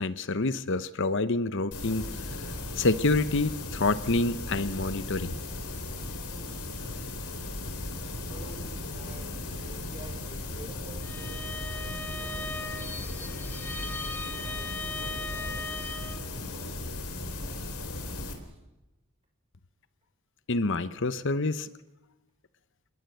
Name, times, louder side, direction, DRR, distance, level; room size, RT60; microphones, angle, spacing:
voice 1, 0.0-2.1 2.8-5.4 20.5-21.7, left 2 dB, 55° left, 13 dB, 0.9 m, -27 dB
sound 1, 1.7-18.3, left 2 dB, 85° left, 4.2 m, -36 dB
voice 2, 8.2-9.4 9.6-12.7 13.0-13.8 14.1-15.8 16.3-18.0 18.4-18.6, right 2 dB, 25° right, 3 dB, 5.8 m, -51 dB
Bowed string instrument, 11.0-16.3, left 3 dB, 10° left, 1.8 m, -38 dB
27.5 x 21.0 x 8.0 m, 1.0 s
head